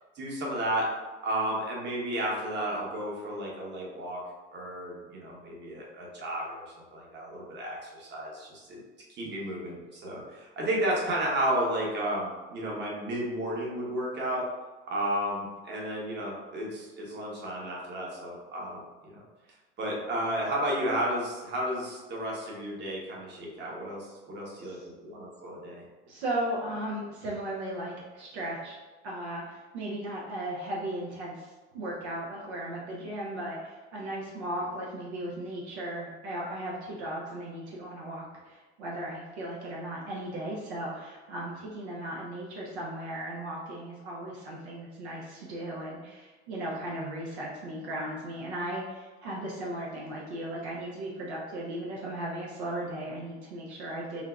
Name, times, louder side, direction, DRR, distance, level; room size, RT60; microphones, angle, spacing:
voice 1, 0.1-0.9 1.2-4.2 4.5-8.8 9.1-14.4 14.9-19.2 19.8-25.8, right 1 dB, 30° right, -3 dB, 1.0 m, -32 dB
voice 2, 26.1-28.8 29.0-54.2, right 1 dB, 60° right, -4 dB, 0.7 m, -36 dB
3.7 x 2.7 x 2.3 m, 1.3 s
figure-of-eight pair, 75°, 37 cm